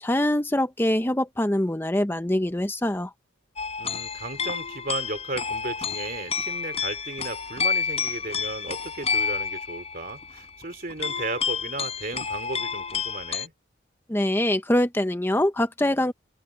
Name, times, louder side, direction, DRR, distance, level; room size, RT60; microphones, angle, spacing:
voice 1, 0.0-3.1 14.1-16.1, left 1 dB, 10° left, 0.7 m, -24 dB
sound 1, 3.6-13.5, left 6 dB, 30° left, 5.8 m, -30 dB
voice 2, 3.8-13.5, right 2 dB, 45° right, 3.1 m, -35 dB
open air
head